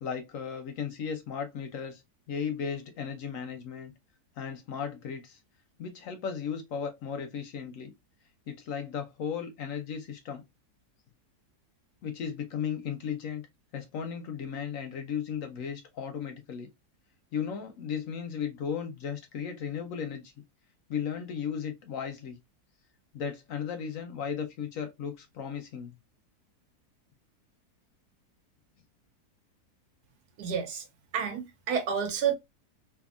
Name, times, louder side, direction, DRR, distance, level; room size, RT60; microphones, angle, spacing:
voice 1, 0.0-2.0 2.3-3.9 4.4-5.4 5.8-7.9 8.5-10.4 12.0-13.4 13.7-16.7 17.3-20.3 20.9-22.4 23.1-25.9, left 7 dB, 65° left, 0.9 m, -35 dB
voice 2, 30.4-30.8 31.1-32.3, right 7 dB, 80° right, 1.3 m, -29 dB
2.7 x 2.6 x 2.4 m
omnidirectional pair, 1.7 m